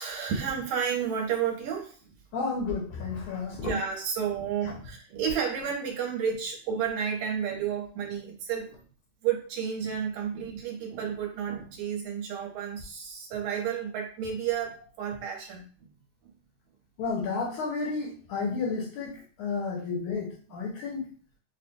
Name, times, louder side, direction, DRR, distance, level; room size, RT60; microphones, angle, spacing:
voice 1, 0.0-2.0 3.6-8.8 9.2-15.7, right 7 dB, 75° right, 0 dB, 2.1 m, -31 dB
voice 2, 2.3-3.8 17.0-19.1 19.4-21.0, left 4 dB, 75° left, -1 dB, 2.3 m, -31 dB
5.8 x 2.1 x 2.6 m, 0.42 s
omnidirectional pair, 3.5 m